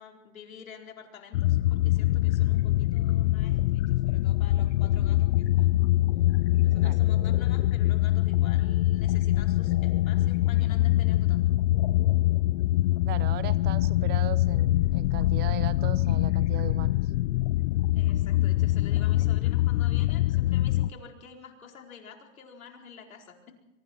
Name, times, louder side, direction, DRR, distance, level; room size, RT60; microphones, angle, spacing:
voice 1, 0.0-5.7 6.6-11.4 17.9-23.5, left 6 dB, 85° left, 2 dB, 4.5 m, -48 dB
sound 1, 1.3-20.9, left 15 dB, 55° left, 0.6 m, -24 dB
voice 2, 13.0-17.1, right 14 dB, 25° right, 16 dB, 0.7 m, -38 dB
24.5 x 23.5 x 4.5 m, 0.93 s
hypercardioid pair, 135°, 40 cm